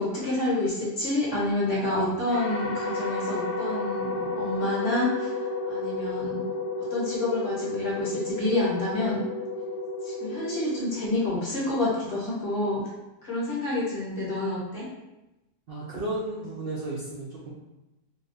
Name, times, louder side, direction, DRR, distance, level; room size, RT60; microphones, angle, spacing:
voice 1, 0.0-6.6 6.9-9.2 10.0-12.8 13.2-14.9, left 2 dB, 45° left, -7 dB, 1.1 m, -28 dB
sound 1, 2.3-11.6, left 2 dB, 65° left, 1.2 m, -32 dB
voice 2, 15.7-17.5, right 2 dB, 65° right, -6 dB, 0.5 m, -33 dB
2.8 x 2.2 x 3.9 m, 0.98 s
omnidirectional pair, 1.8 m